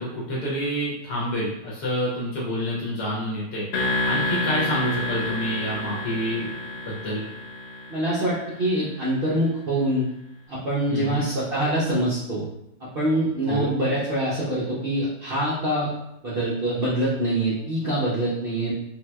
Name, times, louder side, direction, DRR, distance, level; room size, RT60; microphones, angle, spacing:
voice 1, 0.0-3.7 4.0-6.5 6.8-7.2 10.9-11.3 13.5-13.7, equal, 70° left, -5 dB, 1.2 m, -28 dB
sound 1, 3.7-8.6, left 2 dB, 90° left, 1.5 m, -29 dB
voice 2, 7.9-10.1 10.5-12.5 12.8-15.9 16.2-18.7, right 1 dB, 70° right, -8 dB, 0.5 m, -25 dB
3.6 x 2.8 x 2.2 m, 0.83 s
omnidirectional pair, 1.9 m